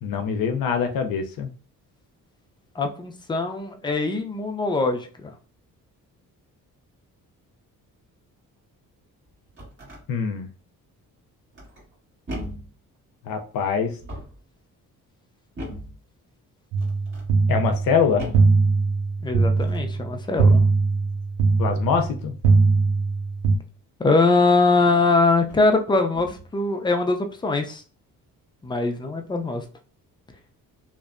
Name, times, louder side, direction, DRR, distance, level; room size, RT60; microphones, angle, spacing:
voice 1, 0.0-1.5 10.1-10.5 13.2-14.0 17.5-18.3 21.6-22.3, left 6 dB, 75° left, 5 dB, 0.5 m, -24 dB
voice 2, 2.8-5.3 19.2-20.6 24.0-27.8 28.6-29.6, left 3 dB, 15° left, 4 dB, 0.4 m, -22 dB
sound 1, 9.3-10.0 11.5-11.9 12.3-12.8 13.9-14.5 15.6-16.0 16.8-17.3 18.2-18.6 19.5-19.9 20.5-20.8 22.0-22.3 24.4-24.5 25.4-25.7 26.1-26.5, equal, 35° right, 1.4 m, -38 dB
sound 2, 16.7-23.6, right 4 dB, 90° right, 0.5 m, -21 dB
2.6 x 2.1 x 2.4 m, 0.37 s
cardioid pair, 90°, 35 cm